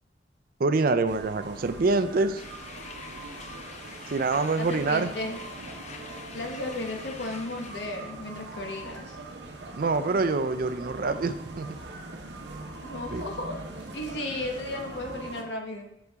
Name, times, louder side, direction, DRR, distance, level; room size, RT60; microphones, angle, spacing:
voice 1, 0.6-2.4 4.1-5.1 9.7-11.8 13.1-13.2, right 3 dB, 55° right, 11 dB, 0.5 m, -26 dB
sound 1, 1.1-15.4, right 2 dB, 80° right, 0.9 m, -42 dB
sound 2, 2.4-8.1, left 5 dB, 40° left, 0.6 m, -46 dB
voice 2, 4.6-5.4 6.3-9.2 12.8-13.6 13.9-15.9, left 2 dB, 85° left, 2 dB, 1.1 m, -34 dB
8.0 x 6.2 x 3.5 m, 0.81 s
head